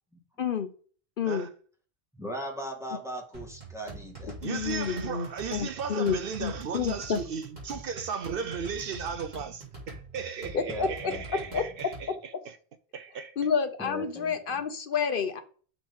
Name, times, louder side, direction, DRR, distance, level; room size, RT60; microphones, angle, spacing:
voice 1, 0.4-0.7 1.2-1.5 4.4-7.2 10.5-10.9 11.5-11.6 13.4-15.4, left 6 dB, 60° left, 0.9 m, -29 dB
voice 2, 2.1-4.5 10.7-11.2 13.8-14.6, equal, 5° right, 1.6 m, -38 dB
sound 1, 3.3-12.1, right 2 dB, 45° right, 3.3 m, -44 dB
voice 3, 4.4-12.6 12.9-13.3, right 6 dB, 65° right, 0.8 m, -36 dB
6.4 x 6.0 x 3.6 m
omnidirectional pair, 1.0 m